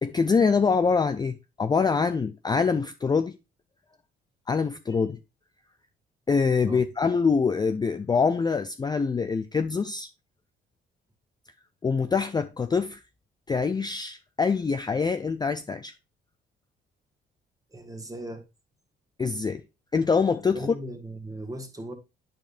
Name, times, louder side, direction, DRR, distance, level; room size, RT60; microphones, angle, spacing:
voice 1, 0.0-3.3 4.5-5.2 6.3-10.1 11.8-13.0 13.5-15.9 19.2-19.6 19.9-20.7, left 5 dB, 20° left, 0.4 m, -24 dB
voice 2, 17.7-18.4 20.5-21.9, right 1 dB, 15° right, 1.5 m, -38 dB
9.2 x 5.1 x 2.5 m
cardioid pair, 90°, 20 cm